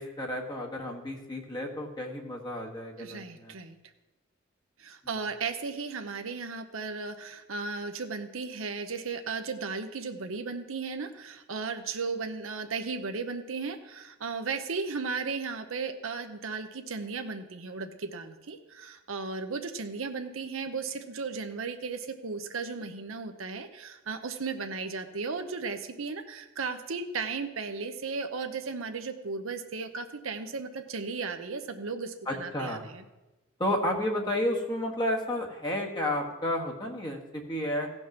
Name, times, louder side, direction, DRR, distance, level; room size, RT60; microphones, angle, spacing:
voice 1, 0.0-3.5 32.3-32.8 33.6-37.9, left 1 dB, 20° left, 0 dB, 1.4 m, -31 dB
voice 2, 3.0-3.8 4.8-33.0, right 4 dB, 75° right, 6 dB, 0.8 m, -35 dB
16.0 x 5.4 x 5.9 m, 1.1 s
head